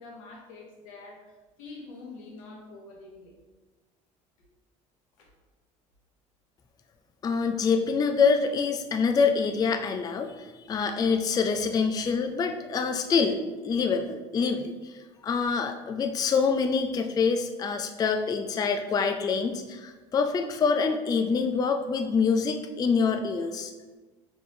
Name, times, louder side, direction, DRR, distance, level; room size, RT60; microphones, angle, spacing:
voice 1, 0.0-3.3 5.2-5.3, left 3 dB, 85° left, -1 dB, 1.1 m, -46 dB
voice 2, 7.2-14.9 15.2-23.7, left 5 dB, 25° left, 6 dB, 0.3 m, -26 dB
4.4 x 3.4 x 2.7 m, 1.2 s
supercardioid pair, 80°, 17 cm